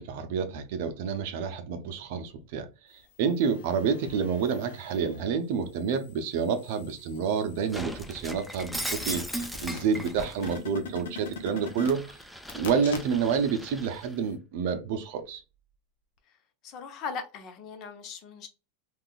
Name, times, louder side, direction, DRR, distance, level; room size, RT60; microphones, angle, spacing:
voice 1, 0.0-2.7 3.2-12.2 12.5-15.4, right 6 dB, 60° right, 0.6 m, -29 dB
sound 1, 3.2-5.2 5.7-13.5 13.8-13.9, left 5 dB, 85° left, 0.8 m, -44 dB
Shatter, 7.7-10.6 11.0-14.1, equal, ahead, 0.4 m, -38 dB
voice 2, 16.6-18.5, left 5 dB, 45° left, 0.8 m, -39 dB
3.6 x 2.4 x 2.3 m
supercardioid pair, 130°, 0 cm